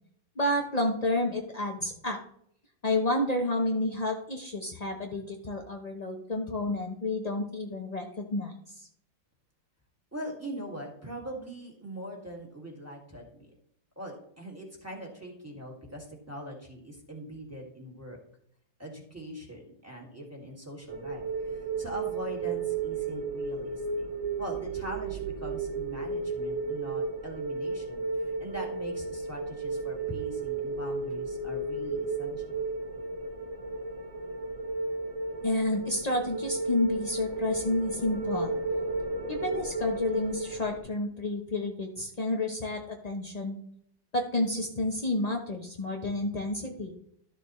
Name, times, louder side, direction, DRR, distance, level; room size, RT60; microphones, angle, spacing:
voice 1, 0.4-2.2 2.8-8.8 35.4-38.5 39.3-43.6 44.1-46.9, left 1 dB, 60° left, 2 dB, 0.4 m, -30 dB
voice 2, 10.1-13.5 14.0-18.2 18.8-24.1 24.4-32.6, equal, 10° right, -1 dB, 2.1 m, -41 dB
sound 1, 20.9-40.8, right 3 dB, 35° right, 0.5 m, -33 dB
12.5 x 6.7 x 3.1 m, 0.69 s
omnidirectional pair, 2.1 m